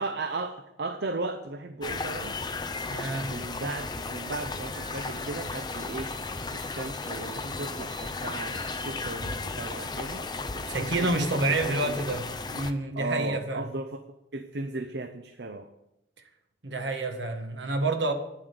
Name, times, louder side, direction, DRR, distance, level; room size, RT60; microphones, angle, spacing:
voice 1, 0.0-2.4 3.3-6.1 6.5-10.2 10.5-12.0 12.9-14.0 14.3-15.7, right 3 dB, 65° right, 8 dB, 0.6 m, -36 dB
sound 1, 1.8-12.7, left 3 dB, 25° left, 0.5 m, -35 dB
sound 2, 1.9-10.4, equal, 20° right, 2.8 m, -53 dB
voice 2, 2.9-3.3 10.7-13.6 16.6-18.1, right 2 dB, 80° right, 6 dB, 1.4 m, -28 dB
9.7 x 7.3 x 6.7 m, 0.89 s
head